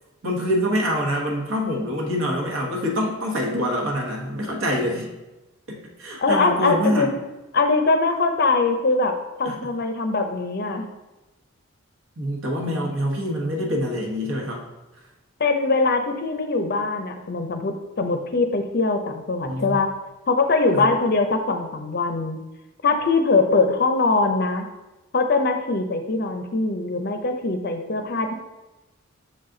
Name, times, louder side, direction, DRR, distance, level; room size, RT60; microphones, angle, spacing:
voice 1, 0.2-5.1 5.7-7.1 9.4-9.7 12.2-14.6 19.4-19.9 20.7-20.9, equal, 65° right, -1 dB, 1.2 m, -25 dB
voice 2, 6.2-7.1 7.5-9.1 9.4-10.9 15.4-19.9 20.3-22.4 22.8-24.7 25.1-28.3, left 3 dB, 50° left, 6 dB, 0.6 m, -22 dB
6.4 x 4.1 x 3.8 m, 1.1 s
head